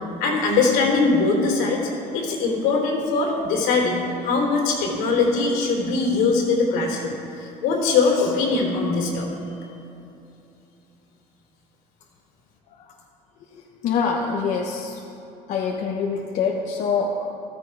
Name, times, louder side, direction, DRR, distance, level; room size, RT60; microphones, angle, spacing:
voice 1, 0.2-9.3, left 4 dB, 80° left, 0 dB, 3.2 m, -21 dB
voice 2, 13.5-15.0 15.5-17.4, left 5 dB, 55° left, 0 dB, 1.1 m, -25 dB
15.0 x 14.0 x 4.8 m, 2.9 s
cardioid pair, 150°, 16 cm